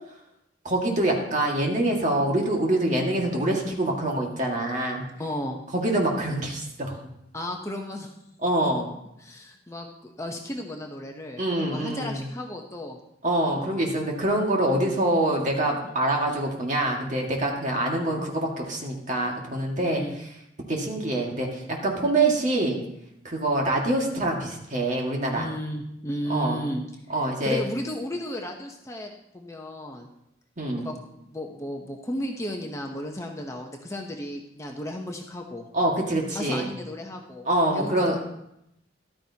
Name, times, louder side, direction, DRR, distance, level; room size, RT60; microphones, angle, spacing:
voice 1, 0.6-5.1 5.7-7.0 8.4-8.9 11.4-12.3 13.2-20.0 20.7-22.8 23.2-25.5 26.3-26.6 27.1-27.6 30.6-30.9 35.7-36.7 37.5-38.2, right 1 dB, 40° right, 0 dB, 1.9 m, -25 dB
voice 2, 5.2-5.6 7.3-8.1 9.2-13.0 13.5-13.9 15.8-15.9 19.8-20.2 25.3-26.8 27.4-30.1 30.8-30.9 31.3-35.7 36.3-37.4 37.7-38.2, left 1 dB, 15° left, 2 dB, 0.8 m, -34 dB
13.5 x 12.0 x 2.9 m, 0.82 s
head